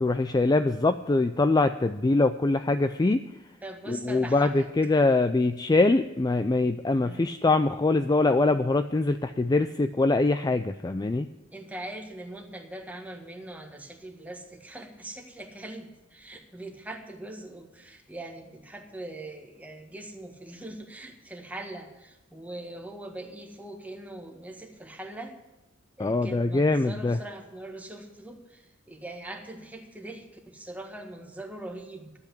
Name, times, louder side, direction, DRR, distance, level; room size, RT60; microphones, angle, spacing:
voice 1, 0.0-3.2 3.9-11.3 26.0-27.2, left 2 dB, 20° left, 10 dB, 0.4 m, -23 dB
voice 2, 3.6-4.7 7.0-7.4 11.5-25.3 26.0-32.1, right 1 dB, 10° right, 3 dB, 1.6 m, -42 dB
12.0 x 8.2 x 8.3 m, 1.0 s
head